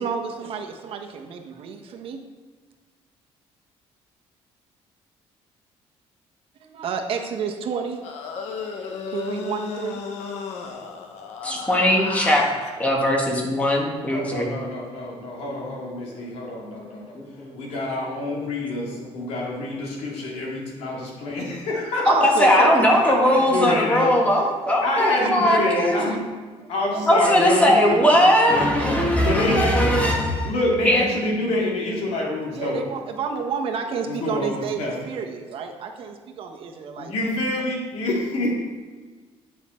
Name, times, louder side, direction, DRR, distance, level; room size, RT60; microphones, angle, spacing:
voice 1, 0.0-2.2 6.6-8.0 8.6-10.0 11.5-11.7 22.0-23.4 23.6-24.5 25.2-26.2 26.9-27.4 27.8-28.5 28.8-29.8 32.5-34.8 35.1-37.1, right 6 dB, 55° right, 3 dB, 1.1 m, -31 dB
sound 1, 8.0-12.7, left 5 dB, 90° left, 0.9 m, -34 dB
voice 2, 11.4-12.4 12.8-14.5 17.1-17.6 22.1-26.0 27.1-30.5 30.8-31.0, equal, 10° left, -1 dB, 1.5 m, -19 dB
voice 3, 14.1-24.2 24.8-26.3 26.7-28.7 29.1-29.8 30.4-32.9 34.0-35.0 37.0-38.5, left 2 dB, 70° left, -2 dB, 2.3 m, -27 dB
9.4 x 5.7 x 4.4 m, 1.4 s
cardioid pair, 155°, 11 cm